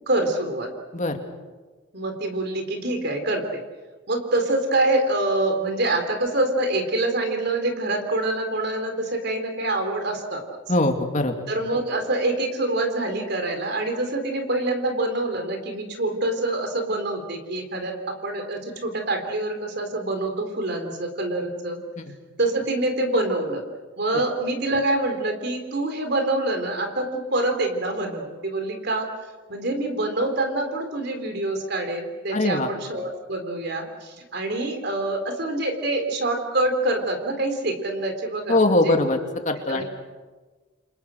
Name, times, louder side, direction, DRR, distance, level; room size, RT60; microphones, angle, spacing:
voice 1, 0.1-0.7 1.9-3.6 4.1-10.4 11.5-21.8 22.4-23.6 24.0-29.1 29.5-39.0 39.7-39.8, right 2 dB, 55° right, 5 dB, 3.8 m, -26 dB
voice 2, 10.7-11.4 32.3-32.7 38.5-39.2 39.4-39.8, left 2 dB, 40° left, 4 dB, 2.4 m, -21 dB
29.5 x 25.0 x 6.4 m, 1.3 s
head